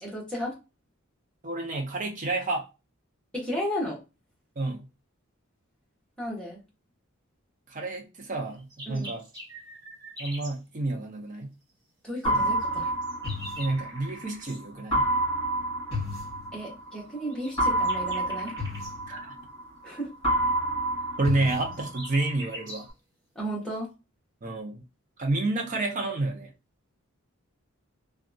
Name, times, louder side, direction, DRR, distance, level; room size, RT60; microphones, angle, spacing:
voice 1, 0.0-0.5 3.3-4.0 6.2-6.6 8.9-9.1 12.0-12.9 16.5-18.5 19.8-20.1 23.3-23.9, equal, 5° left, 1.0 m, -33 dB
voice 2, 1.4-2.7 4.6-4.9 7.7-9.2 10.2-11.5 12.3-12.5 13.6-15.1 19.1-19.4 21.2-22.9 24.4-24.8 25.2-26.5, right 2 dB, 35° right, 0.5 m, -29 dB
sound 1, 8.5-10.6 12.6-14.6 17.3-18.9 21.3-22.9, equal, 20° right, 1.4 m, -43 dB
sound 2, 12.2-14.3 14.9-17.0 17.6-19.9 20.2-22.3, right 1 dB, 25° left, 1.4 m, -28 dB
2.7 x 2.3 x 2.5 m
head